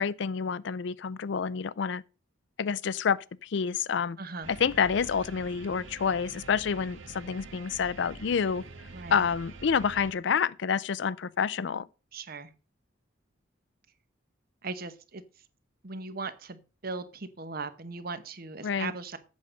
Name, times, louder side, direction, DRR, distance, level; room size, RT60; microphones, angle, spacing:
voice 1, 0.0-2.0 2.6-4.2 4.6-8.6 9.1-11.9 18.6-18.9, left 6 dB, 65° left, 0.4 m, -28 dB
voice 2, 4.2-4.5 8.9-9.3 12.1-12.5 14.6-15.2 15.8-19.2, right 4 dB, 50° right, 1.0 m, -38 dB
sound 1, 4.4-10.1, right 3 dB, 80° right, 1.7 m, -46 dB
8.4 x 6.6 x 5.2 m
head